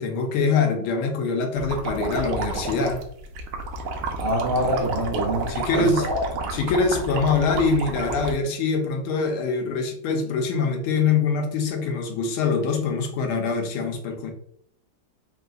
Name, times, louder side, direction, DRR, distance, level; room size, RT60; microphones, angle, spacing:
voice 1, 0.0-3.0 5.5-6.1 6.5-14.3, left 4 dB, 85° left, 4 dB, 1.6 m, -24 dB
sound 1, 1.6-8.3, right 3 dB, 80° right, 1.5 m, -30 dB
voice 2, 4.2-6.5, equal, 60° right, 0 dB, 1.5 m, -26 dB
4.1 x 3.8 x 2.4 m, 0.64 s
omnidirectional pair, 2.3 m